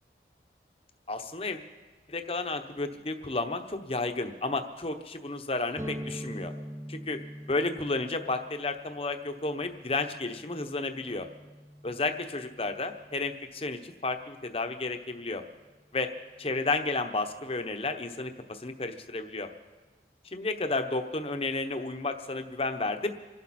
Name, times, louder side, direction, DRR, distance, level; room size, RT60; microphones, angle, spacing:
voice 1, 1.1-1.6 2.1-6.5 6.9-7.2 7.5-11.3 11.8-15.4 15.9-16.1 16.4-19.5 20.3-23.1, left 3 dB, 30° left, 7 dB, 0.9 m, -32 dB
sound 1, 5.8-13.4, equal, 15° right, 0.6 m, -44 dB
27.0 x 12.0 x 4.3 m, 1.3 s
head